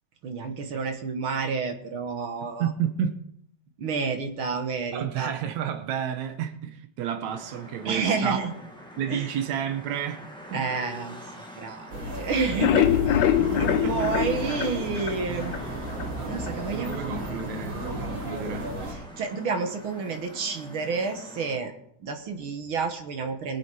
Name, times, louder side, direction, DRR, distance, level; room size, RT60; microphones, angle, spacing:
voice 1, 0.2-2.7 3.8-5.3 7.8-8.5 9.1-9.4 10.5-15.5 16.2-17.0 18.9-21.7 22.0-23.6, right 4 dB, 55° right, 1.8 m, -30 dB
voice 2, 2.6-3.2 4.9-8.4 9.0-10.2 10.5-10.6 13.4-14.2 16.7-18.7, right 9 dB, 75° right, 2.3 m, -31 dB
sound 1, 7.3-21.6, equal, ahead, 1.1 m, -44 dB
sound 2, 11.9-18.9, right 1 dB, 40° right, 4.6 m, -34 dB
sound 3, 12.4-15.6 16.0-16.1 16.5-16.6 16.9-17.0, left 10 dB, 75° left, 2.0 m, -24 dB
21.5 x 7.6 x 4.7 m
omnidirectional pair, 3.4 m